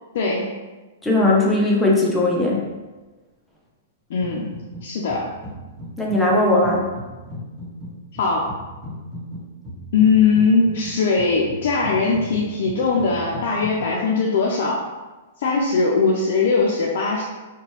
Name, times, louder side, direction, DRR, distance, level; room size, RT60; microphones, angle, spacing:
voice 1, 0.1-0.5 4.1-4.5 4.8-5.3 8.1-8.5 9.9-14.9 15.4-17.2, left 4 dB, 60° left, -3 dB, 0.4 m, -20 dB
voice 2, 1.0-2.6 6.0-6.9, left 2 dB, 5° left, -4 dB, 0.6 m, -18 dB
sound 1, 4.2-4.8 5.1-13.9, left 1 dB, 20° right, 1.2 m, -37 dB
2.8 x 2.2 x 3.0 m, 1.2 s
hypercardioid pair, 125°, 0 cm